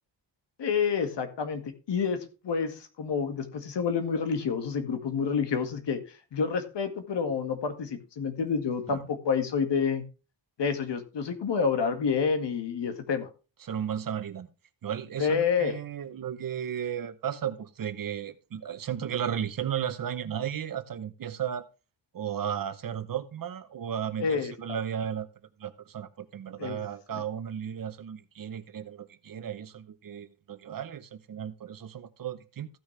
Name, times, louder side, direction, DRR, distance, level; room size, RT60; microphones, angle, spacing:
voice 1, 0.6-6.0 6.3-10.0 10.6-13.3 15.2-15.8 24.2-24.8 26.6-26.8, left 6 dB, 70° left, 2.0 m, -28 dB
voice 2, 13.6-14.5 14.8-21.7 22.1-25.3 25.6-32.7, right 9 dB, 50° right, 0.8 m, -34 dB
15.5 x 6.2 x 3.2 m
wide cardioid pair, 170°, 43 cm